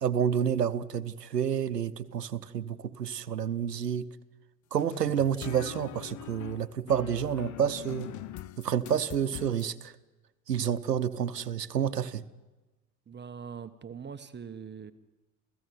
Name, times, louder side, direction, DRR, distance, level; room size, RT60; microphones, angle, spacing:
voice 1, 0.0-4.1 4.7-8.1 8.6-9.9 10.5-12.2, right 8 dB, 90° right, 14 dB, 0.9 m, -29 dB
sound 1, 4.8-9.7, left 14 dB, 40° left, 0.8 m, -43 dB
voice 2, 13.1-14.9, right 6 dB, 20° right, 10 dB, 1.2 m, -42 dB
29.0 x 16.0 x 9.6 m, 1.2 s
figure-of-eight pair, 70°, 47 cm